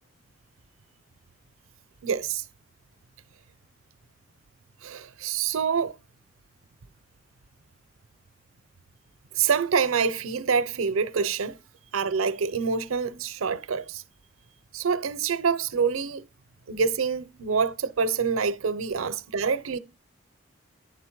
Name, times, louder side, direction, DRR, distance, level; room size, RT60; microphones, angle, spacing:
voice 1, 2.0-2.4 4.8-5.9 9.3-11.6 11.9-14.0 14.7-16.3 16.7-19.8, right 6 dB, 85° right, 0.6 m, -26 dB
9.8 x 4.0 x 4.6 m
head